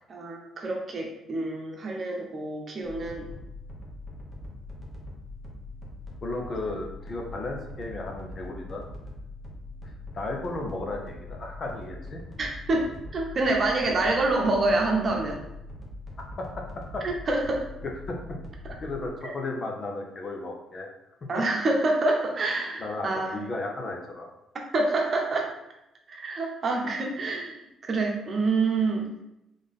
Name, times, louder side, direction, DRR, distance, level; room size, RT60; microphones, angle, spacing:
voice 1, 0.1-3.3 12.4-12.9 13.1-15.4 17.0-17.7 19.2-19.3 21.3-23.4 24.7-25.5 26.1-29.2, right 2 dB, 40° right, 0 dB, 0.9 m, -27 dB
sound 1, 2.8-19.1, left 2 dB, 15° left, 1.0 m, -42 dB
voice 2, 6.2-8.9 10.1-12.2 16.4-16.5 16.9-17.0 18.1-18.2 18.8-20.9 22.8-24.3, left 2 dB, 40° left, 1 dB, 0.8 m, -34 dB
3.7 x 3.5 x 3.7 m, 0.86 s
cardioid pair, 115°, 0 cm